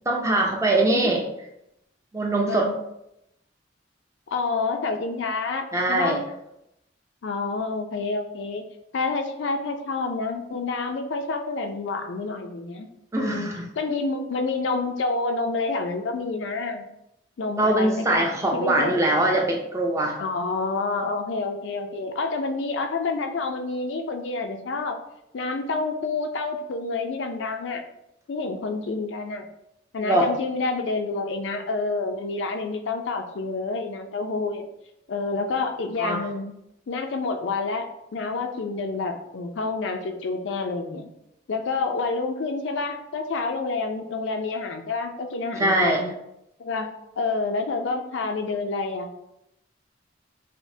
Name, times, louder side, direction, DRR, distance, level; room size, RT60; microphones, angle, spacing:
voice 1, 0.1-1.2 2.1-2.7 5.7-6.2 13.1-13.7 17.6-20.2 30.0-30.3 36.0-36.2 45.6-46.0, right 1 dB, 15° right, 0 dB, 0.5 m, -22 dB
voice 2, 4.3-6.2 7.2-8.6 8.9-12.9 13.1-16.9 17.4-19.0 20.2-25.0 25.3-27.8 28.3-29.5 29.9-34.6 35.1-36.5 36.9-37.9 38.1-41.1 41.5-46.1 46.6-49.1, left 3 dB, 70° left, 5 dB, 0.4 m, -28 dB
5.0 x 2.1 x 2.6 m, 0.83 s
head